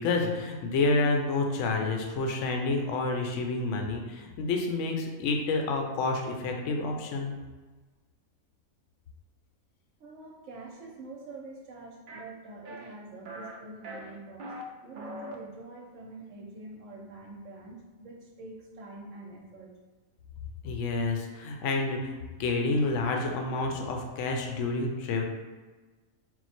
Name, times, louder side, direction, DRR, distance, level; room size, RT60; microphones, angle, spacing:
voice 1, 0.0-7.3 20.6-25.2, left 3 dB, 65° left, 2 dB, 0.9 m, -29 dB
voice 2, 10.0-14.5 14.8-19.7, right 2 dB, 65° right, -1 dB, 1.0 m, -46 dB
sound 1, 12.1-12.2 12.7-12.9 13.3-13.6 13.8-14.6 14.9-15.4, right 1 dB, 85° right, 0.4 m, -41 dB
4.4 x 2.0 x 4.2 m, 1.3 s
omnidirectional pair, 1.5 m